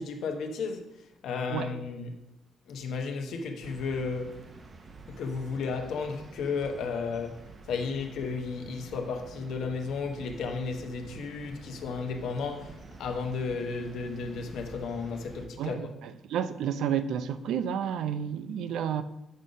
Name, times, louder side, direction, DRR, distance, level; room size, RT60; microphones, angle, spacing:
voice 1, 0.0-2.2 2.7-4.5 5.1-15.9, left 4 dB, 75° left, 0.9 m, -34 dB
sound 1, 3.6-15.5, right 3 dB, 40° right, 0.7 m, -48 dB
voice 2, 15.6-19.0, right 8 dB, 80° right, 0.4 m, -31 dB
6.3 x 3.8 x 5.2 m
cardioid pair, 90°, 0 cm